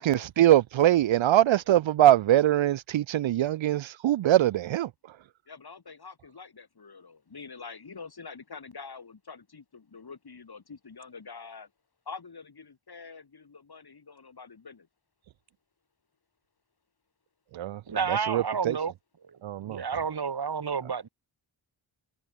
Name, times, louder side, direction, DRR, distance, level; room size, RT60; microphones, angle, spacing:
voice 1, 0.0-5.2 17.5-17.8 18.1-18.8 19.4-19.8, right 13 dB, 70° right, 0.6 m, -23 dB
voice 2, 5.5-11.7 12.1-14.9, left 5 dB, 50° left, 5.8 m, -46 dB
voice 3, 17.9-18.9 19.2-21.1, right 6 dB, 50° right, 2.0 m, -30 dB
cardioid pair, 80°, 49 cm